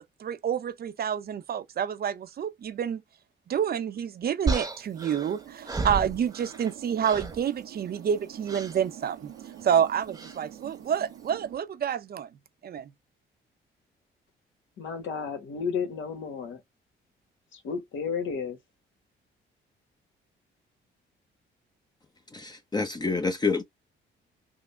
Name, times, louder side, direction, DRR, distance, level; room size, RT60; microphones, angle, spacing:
voice 1, 0.2-3.0 3.5-9.3 9.6-12.3 12.6-12.9, right 8 dB, 50° right, 0.6 m, -28 dB
sound 1, 4.5-6.7 7.0-7.4 8.5-8.8 10.1-10.4, right 3 dB, 15° right, 0.9 m, -32 dB
sound 2, 5.0-11.6, right 10 dB, 85° right, 0.8 m, -47 dB
voice 2, 14.8-16.6 17.5-18.6, left 6 dB, 75° left, 1.3 m, -32 dB
voice 3, 22.3-23.6, left 4 dB, 20° left, 0.7 m, -28 dB
3.7 x 2.1 x 3.2 m
cardioid pair, 90°, 20 cm